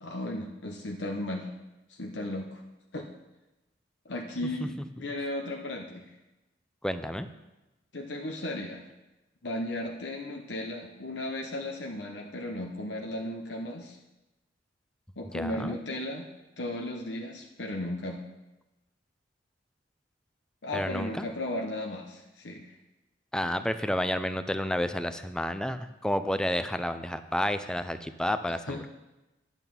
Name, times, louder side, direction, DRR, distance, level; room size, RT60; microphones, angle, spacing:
voice 1, 0.0-1.5 1.9-2.6 2.9-3.1 4.0-6.1 7.9-8.8 9.4-14.0 15.2-16.3 16.6-18.2 20.6-22.7 28.5-28.8, left 1 dB, 65° left, 1 dB, 1.0 m, -35 dB
voice 2, 6.8-7.3 15.3-15.8 20.7-21.2 23.3-28.9, left 1 dB, 5° left, 10 dB, 0.5 m, -30 dB
10.5 x 8.2 x 5.4 m, 1.0 s
head